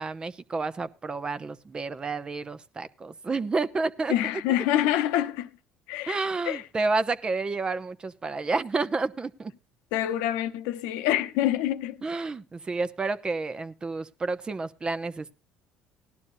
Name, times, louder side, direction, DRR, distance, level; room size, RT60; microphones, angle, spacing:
voice 1, 0.0-4.1 6.1-9.5 12.0-15.3, right 3 dB, 25° right, 0.8 m, -30 dB
voice 2, 4.1-5.5 5.9-6.2 6.4-6.6 9.9-12.0, left 12 dB, 80° left, 0.9 m, -26 dB
17.0 x 12.0 x 2.7 m
supercardioid pair, 75°, 3 cm